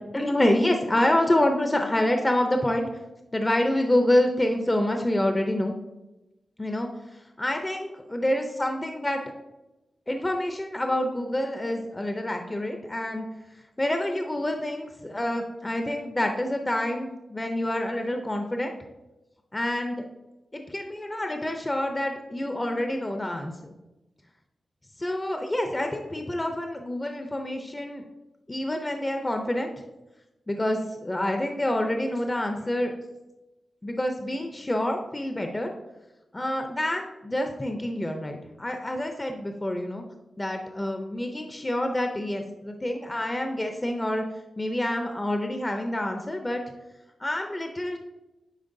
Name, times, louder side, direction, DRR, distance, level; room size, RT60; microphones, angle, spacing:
voice 1, 0.1-2.9 3.3-5.7 6.6-6.9 7.4-9.2 10.1-13.3 13.8-18.7 19.5-20.0 20.5-23.5 25.0-28.0 28.5-29.7 30.5-32.9 33.8-35.7 36.3-40.0 40.4-44.2 44.6-46.6 47.2-48.0, left 1 dB, 15° left, 4 dB, 0.5 m, -27 dB
9.0 x 4.1 x 2.6 m, 1.0 s
wide cardioid pair, 120°, 0 cm